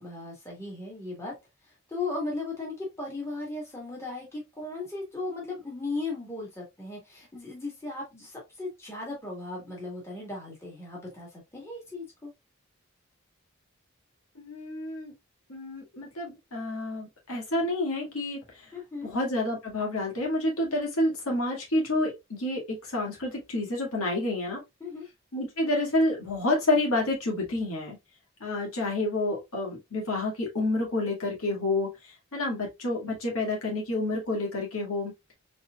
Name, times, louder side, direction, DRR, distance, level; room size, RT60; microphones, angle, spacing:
voice 1, 0.0-1.3 1.6-12.3 18.7-19.1 24.8-25.1, left 3 dB, 15° left, 1.7 m, -37 dB
voice 2, 14.4-15.1 15.5-18.4 19.0-24.6 25.3-28.0 28.4-35.1, left 2 dB, 90° left, 2.2 m, -29 dB
4.2 x 4.0 x 2.4 m
head